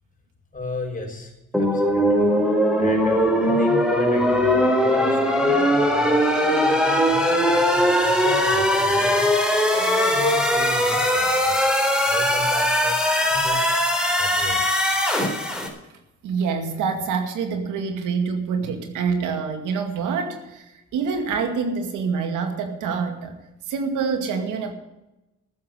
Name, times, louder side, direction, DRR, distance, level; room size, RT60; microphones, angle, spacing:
voice 1, 0.5-1.3 1.6-2.3 2.7-11.5 12.1-13.6 14.1-14.6, left 2 dB, 25° left, 0 dB, 6.2 m, -34 dB
sound 1, 1.5-15.7, equal, ahead, 4.0 m, -20 dB
voice 2, 16.2-23.4 23.7-24.7, right 5 dB, 90° right, 5 dB, 2.3 m, -26 dB
14.0 x 7.4 x 9.8 m, 0.95 s
cardioid pair, 90°, 30 cm